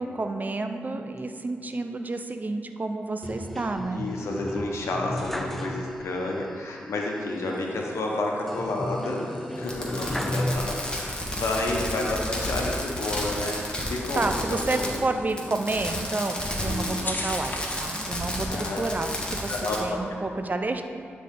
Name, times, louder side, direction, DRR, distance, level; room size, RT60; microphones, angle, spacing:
voice 1, 0.0-4.1 14.2-19.5 19.8-20.8, right 2 dB, 35° right, 6 dB, 0.6 m, -30 dB
sound 1, 3.2-6.3 6.6-6.7 8.5-11.2 11.7-12.6, left 1 dB, 5° left, 0.6 m, -34 dB
voice 2, 3.9-15.0 16.6-17.1 18.4-18.9 19.5-19.8, left 2 dB, 80° left, -1 dB, 1.2 m, -30 dB
sound 2, 7.3-18.0, left 2 dB, 40° left, 0.9 m, -43 dB
Fireworks, 9.6-15.0 15.3-19.8, left 1 dB, 20° left, 1.6 m, -32 dB
11.5 x 4.1 x 3.8 m, 2.6 s
cardioid pair, 50°, 5 cm